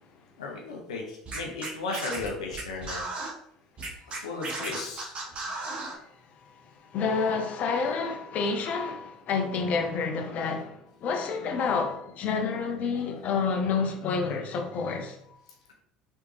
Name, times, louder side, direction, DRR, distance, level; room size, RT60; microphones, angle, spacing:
voice 1, 0.4-3.1 4.1-5.2, left 3 dB, 85° left, 0.7 m, -35 dB
Scratching (performance technique), 1.2-3.3 3.8-6.0, right 2 dB, 40° right, 1.3 m, -35 dB
voice 2, 6.9-15.2, left 5 dB, 50° left, 0.8 m, -29 dB
4.2 x 3.3 x 3.2 m
hypercardioid pair, 70°, 3 cm